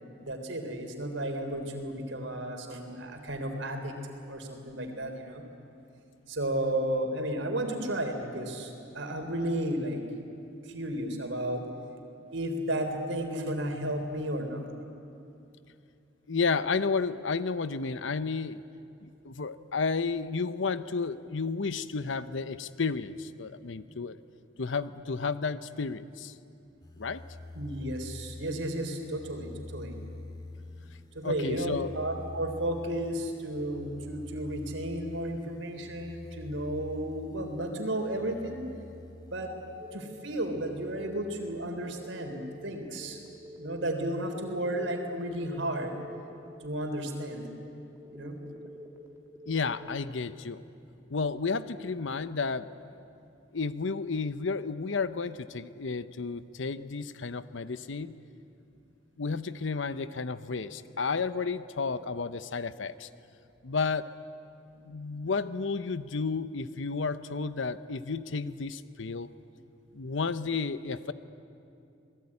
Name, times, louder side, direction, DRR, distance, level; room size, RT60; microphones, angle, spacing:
voice 1, 0.2-3.9 4.3-5.4 6.3-10.0 10.6-11.6 12.3-14.7 27.5-30.0 31.1-38.7 39.3-39.5 39.9-43.2 43.6-45.9 46.6-47.4 48.0-48.4, right 1 dB, 80° right, 4 dB, 3.7 m, -33 dB
voice 2, 16.3-18.6 19.0-24.2 24.6-26.3 27.0-27.2 31.2-31.9 49.5-50.6 51.1-52.7 53.5-58.1 59.2-63.1 63.6-64.1 64.8-69.3 69.9-71.1, left 4 dB, 80° left, 14 dB, 0.8 m, -32 dB
sound 1, 26.8-42.0 42.6-43.6, left 2 dB, 20° left, 2.4 m, -47 dB
sound 2, 39.8-49.8, right 1 dB, 15° right, 2.5 m, -48 dB
27.0 x 19.5 x 9.8 m, 2.6 s
head